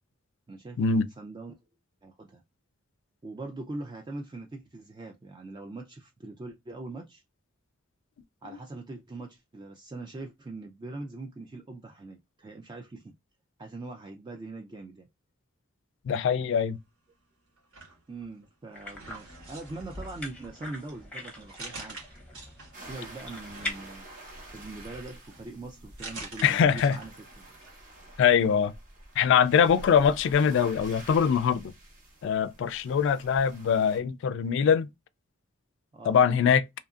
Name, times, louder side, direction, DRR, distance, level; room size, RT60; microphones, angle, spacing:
voice 1, 0.5-1.6 2.0-2.4 3.2-7.2 8.4-13.1 13.6-15.1 18.1-22.0 22.8-24.0 24.5-27.6 29.7-30.2 35.9-36.2, right 2 dB, 20° right, 0.3 m, -42 dB
voice 2, 16.1-16.8 26.4-27.0 28.2-28.7 29.2-31.7 32.2-34.9 36.1-36.6, left 7 dB, 65° left, 0.3 m, -23 dB
sound 1, 17.6-18.5 18.9-23.0 23.5-27.3 27.6-27.7, right 2 dB, 70° right, 1.3 m, -46 dB
sound 2, 18.7-23.7, left 1 dB, 5° left, 0.7 m, -42 dB
sound 3, 22.7-34.0, right 1 dB, 40° right, 0.9 m, -48 dB
2.7 x 2.5 x 2.3 m
head